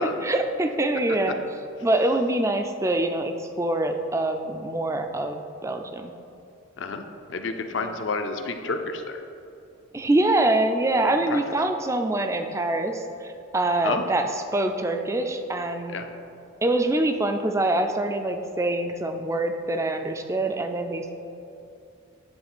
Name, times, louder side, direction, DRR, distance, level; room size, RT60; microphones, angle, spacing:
voice 1, 0.2-1.4 1.8-6.1 7.8-7.9 9.9-16.0 16.6-21.1, right 2 dB, 15° right, 6 dB, 0.3 m, -25 dB
voice 2, 6.8-9.2 11.1-11.4 13.8-14.0 15.9-16.1, left 3 dB, 60° left, 6 dB, 0.5 m, -30 dB
9.5 x 3.3 x 6.0 m, 2.7 s
head